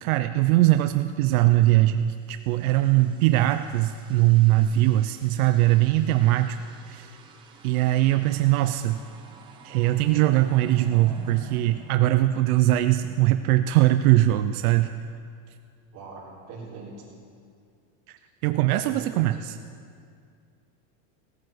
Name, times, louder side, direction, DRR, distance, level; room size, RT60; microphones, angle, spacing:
voice 1, 0.0-6.6 6.9-7.1 7.6-9.0 9.6-14.9 18.1-19.6, right 15 dB, 85° right, 9 dB, 0.6 m, -21 dB
sound 1, 2.2-12.9, right 4 dB, 15° right, 0.4 m, -48 dB
voice 2, 15.9-17.1 18.8-19.3, right 4 dB, 35° right, -6 dB, 4.0 m, -41 dB
17.0 x 9.5 x 6.2 m, 2.2 s
supercardioid pair, 175°, 42 cm